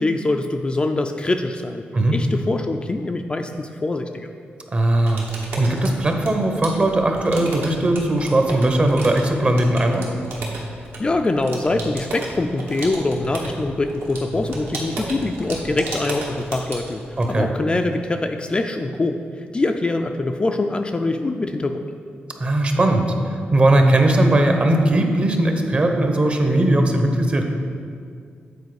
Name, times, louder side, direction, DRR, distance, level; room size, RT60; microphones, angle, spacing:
voice 1, 0.0-1.8 2.1-4.3 11.0-17.0 17.3-19.2 19.5-21.8, left 2 dB, 25° left, 5 dB, 0.3 m, -23 dB
voice 2, 4.7-5.3 5.6-10.2 17.2-17.5 22.4-23.0 23.3-27.4, right 1 dB, 30° right, 4 dB, 0.8 m, -18 dB
sound 1, 5.0-17.4, right 2 dB, 75° right, 1.3 m, -34 dB
8.1 x 4.2 x 4.8 m, 2.3 s
cardioid pair, 110°, 4 cm